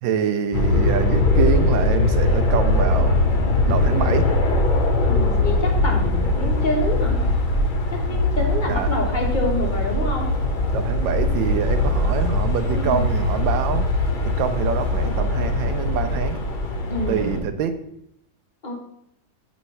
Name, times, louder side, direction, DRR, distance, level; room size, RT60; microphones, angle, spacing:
voice 1, 0.0-3.2 3.7-4.3 8.7-8.9 10.7-13.9 14.4-16.4 17.1-17.8, right 7 dB, 80° right, 9 dB, 1.3 m, -25 dB
sound 1, 0.5-17.4, left 2 dB, 55° left, 0.5 m, -21 dB
voice 2, 5.0-7.2 7.9-10.3 12.7-13.1 16.9-17.3 18.6-18.7, left 1 dB, 30° left, 0 dB, 1.2 m, -27 dB
8.8 x 3.1 x 5.5 m, 0.78 s
omnidirectional pair, 2.1 m